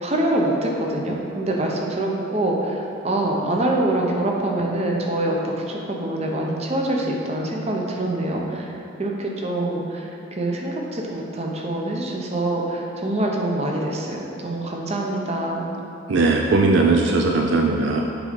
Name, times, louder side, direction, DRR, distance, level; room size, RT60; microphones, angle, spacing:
voice 1, 0.0-8.7 9.0-15.7, right 1 dB, 30° right, -1 dB, 0.8 m, -25 dB
voice 2, 16.1-18.0, right 3 dB, 60° right, 1 dB, 0.4 m, -18 dB
8.1 x 3.8 x 5.2 m, 2.7 s
head